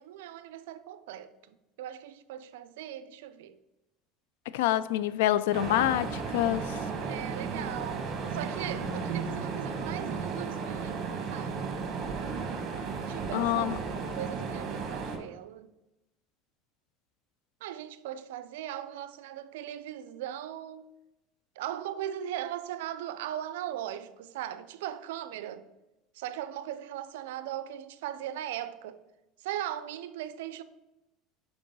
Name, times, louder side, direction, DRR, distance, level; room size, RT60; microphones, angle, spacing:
voice 1, 0.0-3.6 7.0-11.8 13.0-13.7 14.0-15.7 17.6-20.9 21.6-25.7 26.1-29.0 29.4-30.6, right 11 dB, 85° right, 0.4 m, -39 dB
voice 2, 4.5-6.8 13.3-13.8, left 13 dB, 85° left, 0.3 m, -26 dB
sound 1, 5.5-15.2, right 5 dB, 45° right, 1.3 m, -34 dB
5.2 x 4.7 x 5.3 m
supercardioid pair, 110°, 0 cm